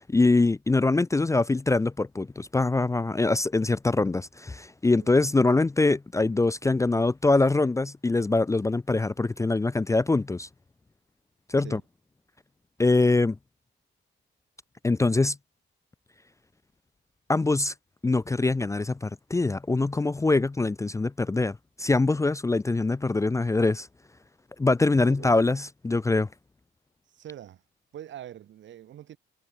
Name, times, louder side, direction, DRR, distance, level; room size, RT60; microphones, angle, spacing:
voice 1, 0.0-10.5 11.5-11.8 12.8-13.4 14.8-15.4 17.3-17.7 18.0-23.9 24.6-26.3, left 3 dB, 15° left, 0.6 m, -23 dB
voice 2, 27.1-27.6 27.9-29.2, right 11 dB, 70° right, 2.1 m, -43 dB
cardioid pair, 90°, 20 cm